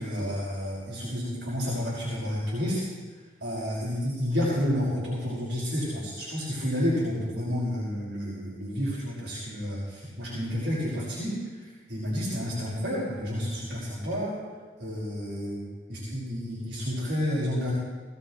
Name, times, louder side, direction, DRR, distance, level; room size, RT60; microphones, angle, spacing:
voice 1, 0.0-2.9 3.4-14.4 14.8-15.6 15.9-17.7, equal, 65° right, -8 dB, 5.4 m, -30 dB
19.5 x 17.5 x 3.2 m, 1.4 s
head